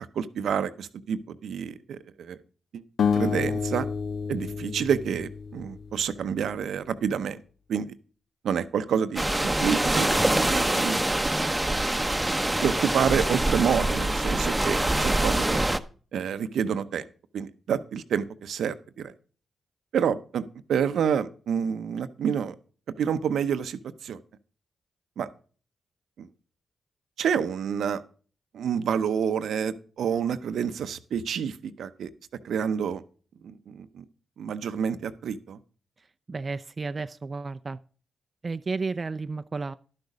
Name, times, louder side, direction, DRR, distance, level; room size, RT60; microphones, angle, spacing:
voice 1, 0.0-2.4 2.7-2.8 3.1-3.9 4.3-7.4 7.7-7.9 8.4-9.2 9.6-11.0 12.6-15.6 16.1-17.0 17.3-19.1 19.9-22.5 23.0-24.2 25.2-25.3 26.2-26.3 27.2-28.0 28.5-32.1 32.4-33.0 33.4-34.0 34.4-35.6, right 7 dB, 75° right, 0.7 m, -28 dB
sound 1, 3.0-6.2, left 6 dB, 70° left, 0.7 m, -29 dB
sound 2, 9.2-15.8, right 1 dB, 15° right, 0.8 m, -25 dB
voice 2, 36.0-37.8 38.4-39.7, right 4 dB, 40° right, 0.4 m, -32 dB
11.5 x 6.7 x 4.9 m
supercardioid pair, 50°, 0 cm